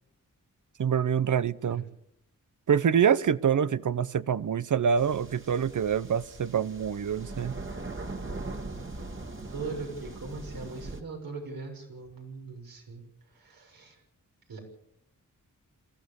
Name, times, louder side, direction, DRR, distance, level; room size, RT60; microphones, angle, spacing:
voice 1, 0.8-1.8 2.7-7.6, right 7 dB, 60° right, 0.9 m, -26 dB
sound 1, 5.0-11.0, right 2 dB, 35° right, 2.3 m, -40 dB
voice 2, 9.5-14.0 14.5-14.6, right 4 dB, 80° right, 6.9 m, -40 dB
27.0 x 15.5 x 7.1 m
wide cardioid pair, 85°, 34 cm